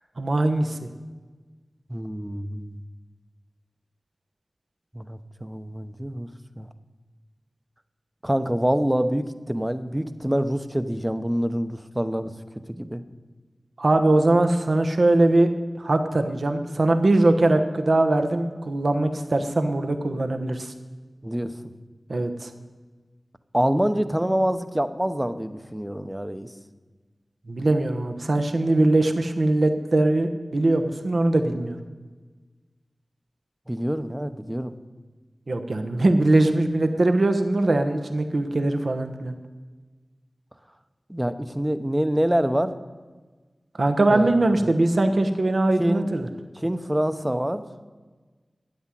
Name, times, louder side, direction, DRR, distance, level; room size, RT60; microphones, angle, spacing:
voice 1, 0.2-0.9 13.8-15.5 15.8-20.7 22.1-22.5 27.5-31.8 35.5-39.3 43.8-46.3, right 2 dB, 65° right, 6 dB, 1.1 m, -21 dB
voice 2, 1.9-2.8 4.9-6.3 6.6-6.7 8.2-12.3 12.7-13.0 21.2-21.5 23.5-26.5 33.7-34.7 41.1-42.8 44.1-44.7 45.8-46.1 46.6-47.6, equal, 10° right, 10 dB, 0.8 m, -26 dB
12.5 x 9.4 x 7.6 m, 1.3 s
wide cardioid pair, 65°, 0 cm